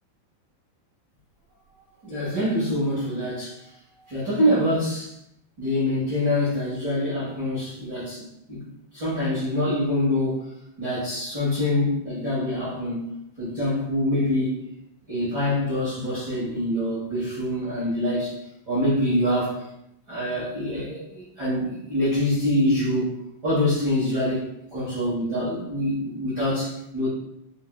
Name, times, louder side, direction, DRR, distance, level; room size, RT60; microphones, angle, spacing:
voice 1, 2.0-3.7 4.1-5.1 5.6-8.6 8.9-10.4 10.8-13.1 13.4-14.6 15.1-18.4 18.7-19.6 20.1-27.1, left 1 dB, 50° right, -10 dB, 1.2 m, -25 dB
5.4 x 3.7 x 2.3 m, 0.80 s
omnidirectional pair, 4.2 m